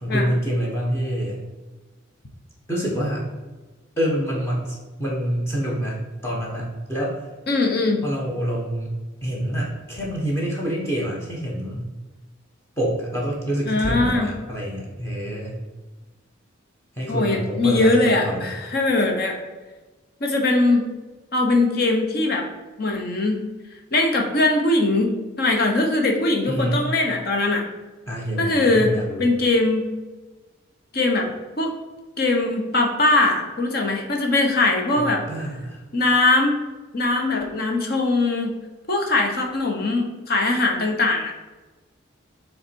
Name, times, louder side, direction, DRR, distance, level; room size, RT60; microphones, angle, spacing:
voice 1, 0.0-1.4 2.7-3.3 4.0-7.2 8.0-11.9 12.8-15.6 17.0-18.5 26.5-26.8 28.1-29.3 35.0-35.8, equal, 15° left, -2 dB, 1.1 m, -26 dB
voice 2, 7.5-8.0 13.7-14.3 17.1-19.4 20.2-20.9 21.3-22.5 22.8-23.4 23.9-27.6 28.4-28.9 29.2-29.9 30.9-31.3 31.6-31.8 32.2-35.2 35.9-36.6 36.9-38.6 38.9-41.4, left 2 dB, 50° left, 2 dB, 1.0 m, -21 dB
7.1 x 3.3 x 4.6 m, 1.2 s
head